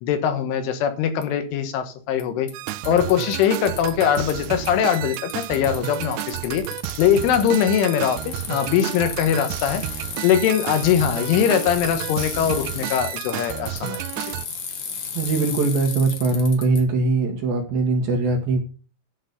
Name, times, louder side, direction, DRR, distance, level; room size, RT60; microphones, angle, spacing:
voice 1, 0.0-2.5 2.9-6.6 7.0-9.8 10.2-14.3, left 8 dB, 85° left, 8 dB, 3.8 m, -21 dB
Bicycle, 1.2-1.3 2.2-2.3 2.5-4.7 4.9-16.8, left 6 dB, 55° left, 2.8 m, -34 dB
sound 1, 2.5-14.5, right 15 dB, 80° right, 2.5 m, -32 dB
voice 2, 15.1-18.6, right 3 dB, 65° right, 3 dB, 2.7 m, -21 dB
11.0 x 5.9 x 6.7 m, 0.38 s
omnidirectional pair, 5.5 m